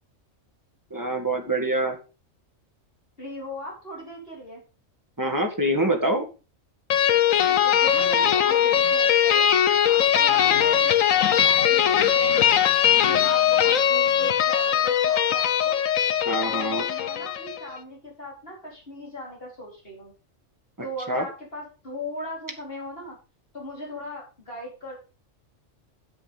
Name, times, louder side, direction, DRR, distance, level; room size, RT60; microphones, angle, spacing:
voice 1, 0.9-2.0 5.2-6.3 16.3-16.8 21.1-21.2, right 1 dB, 15° right, 3 dB, 2.2 m, -25 dB
voice 2, 3.2-4.6 7.6-9.6 9.9-10.9 11.3-12.7 13.0-15.8 16.4-20.1 20.8-23.2 23.5-25.0, left 1 dB, 45° left, -2 dB, 4.5 m, -38 dB
sound 1, 6.9-17.6, left 9 dB, 85° left, 1.2 m, -20 dB
8.8 x 8.2 x 5.2 m, 0.33 s
omnidirectional pair, 1.3 m